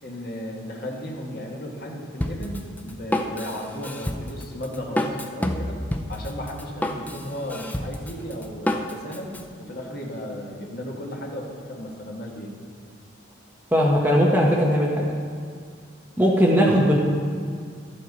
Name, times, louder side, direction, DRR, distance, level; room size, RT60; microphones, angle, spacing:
voice 1, 0.0-5.8 6.1-12.5, equal, 50° left, -1 dB, 1.5 m, -35 dB
Drum kit, 2.2-9.4, left 1 dB, 10° left, 0.4 m, -29 dB
voice 2, 13.7-15.1 16.2-17.0, equal, 10° right, -3 dB, 0.9 m, -19 dB
12.5 x 7.6 x 4.1 m, 2.1 s
head